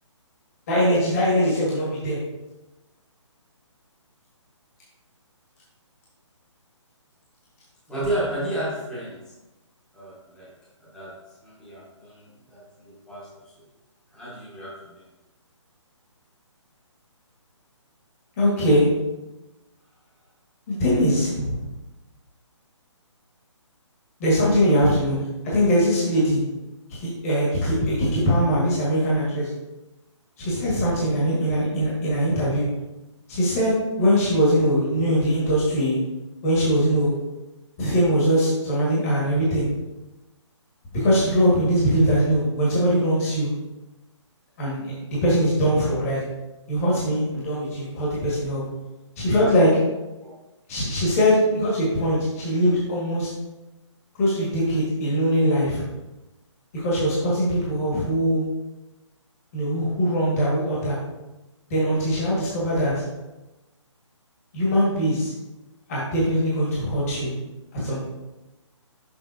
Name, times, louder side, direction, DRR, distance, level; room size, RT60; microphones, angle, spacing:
voice 1, 0.7-2.2 18.4-18.9 20.7-21.6 24.2-25.2 25.4-26.4 26.9-29.5 30.4-32.7 33.3-36.0 36.4-37.1 37.8-39.7 40.9-43.5 44.6-46.2 46.7-48.6 49.2-49.7 50.7-53.3 54.2-55.8 56.7-58.4 59.5-61.0 61.7-62.9 64.5-65.3 65.9-67.3 67.8-68.0, equal, 30° left, -6 dB, 1.8 m, -21 dB
voice 2, 7.9-9.2 9.9-10.5 10.8-11.1 11.4-13.3 14.1-15.0 50.2-50.3, right 1 dB, 5° left, -8 dB, 1.2 m, -32 dB
7.1 x 5.5 x 2.7 m, 1.0 s
hypercardioid pair, 165°, 16 cm